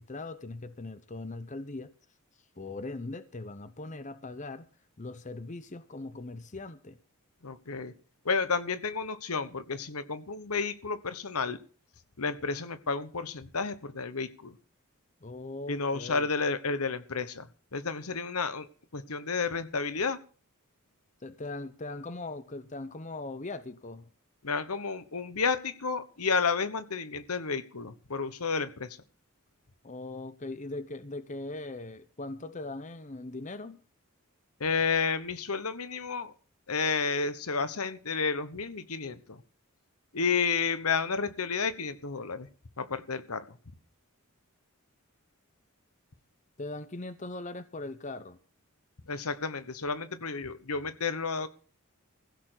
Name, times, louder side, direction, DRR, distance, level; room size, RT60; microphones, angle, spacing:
voice 1, 0.0-1.9 2.6-4.7 5.0-7.0 15.2-16.3 21.2-24.1 29.8-33.8 46.6-48.4, left 2 dB, 35° left, 0.8 m, -40 dB
voice 2, 7.4-7.9 8.2-11.6 12.2-14.5 15.7-18.7 18.9-20.2 24.4-29.0 34.6-36.3 36.7-39.4 40.1-42.5 42.8-43.4 49.1-51.5, left 5 dB, 80° left, 1.2 m, -31 dB
16.0 x 6.8 x 8.0 m
head